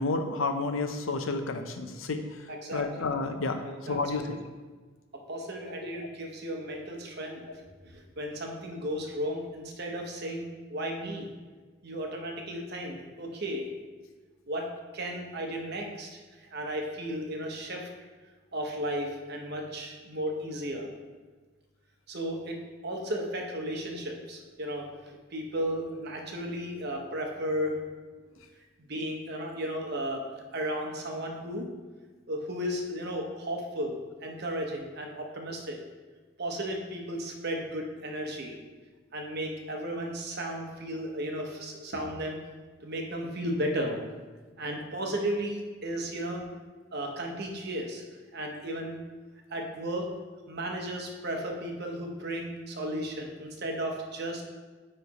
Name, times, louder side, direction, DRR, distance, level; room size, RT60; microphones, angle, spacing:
voice 1, 0.0-2.2 2.7-4.4 5.8-6.1, left 3 dB, 75° left, 7 dB, 0.6 m, -31 dB
voice 2, 2.5-3.0 3.5-4.4 5.1-11.3 11.8-13.7 14.5-14.7 14.9-16.2 16.5-17.9 18.5-20.9 22.1-24.9 25.3-27.8 28.8-31.7 32.3-34.0 34.2-35.8 36.4-38.6 39.1-42.4 42.8-44.0 44.6-46.5 46.9-48.0 48.3-49.0 49.5-50.1 50.5-54.4, equal, 50° right, 2 dB, 0.9 m, -34 dB
9.3 x 3.2 x 4.1 m, 1.4 s
head